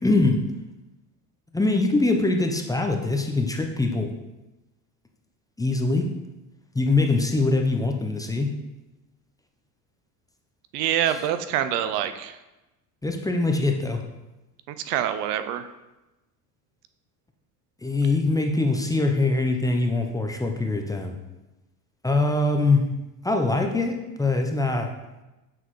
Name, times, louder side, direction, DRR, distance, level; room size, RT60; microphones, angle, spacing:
voice 1, 0.0-0.4 1.5-4.1 5.6-6.1 6.7-8.5 13.0-14.0 17.8-21.2 22.0-22.9 23.2-24.9, left 2 dB, 10° left, 3 dB, 0.5 m, -23 dB
voice 2, 10.7-12.4 14.7-15.6, right 10 dB, 80° right, 11 dB, 0.6 m, -26 dB
7.7 x 4.0 x 3.1 m, 1.0 s
supercardioid pair, 85°, 46 cm